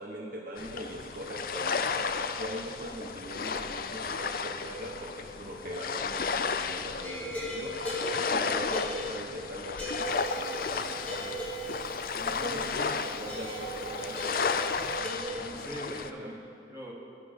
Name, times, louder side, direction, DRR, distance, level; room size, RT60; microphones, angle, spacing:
voice 1, 0.0-7.8 8.3-11.4 12.2-14.4 14.8-14.9 15.8-16.3, right 1 dB, 50° right, -2 dB, 1.1 m, -41 dB
sound 1, 0.6-16.1, left 5 dB, 50° left, 0.5 m, -33 dB
sound 2, 7.0-9.4 9.8-12.1 13.3-15.2, right 1 dB, 10° left, 4.0 m, -38 dB
Wind, 9.9-15.0, right 3 dB, 65° right, 1.6 m, -47 dB
voice 2, 12.1-12.7 15.0-16.4 16.7-16.9, equal, 15° right, -6 dB, 2.4 m, -43 dB
21.0 x 10.5 x 3.6 m, 2.5 s
head